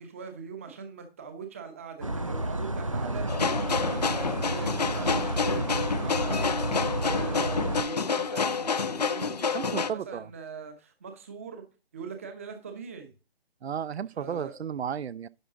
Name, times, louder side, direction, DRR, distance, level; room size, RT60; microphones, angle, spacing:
voice 1, 0.0-11.6 11.9-13.1 14.1-14.6, right 5 dB, 15° right, 0.8 m, -42 dB
sound 1, 2.0-7.8, right 1 dB, 35° right, 0.4 m, -31 dB
voice 2, 2.9-3.2 5.5-5.6 9.5-10.3 13.6-15.3, right 8 dB, 85° right, 0.6 m, -34 dB
sound 2, 3.3-9.9, left 5 dB, 40° left, 0.5 m, -28 dB
10.5 x 5.9 x 3.7 m
hypercardioid pair, 170°, 31 cm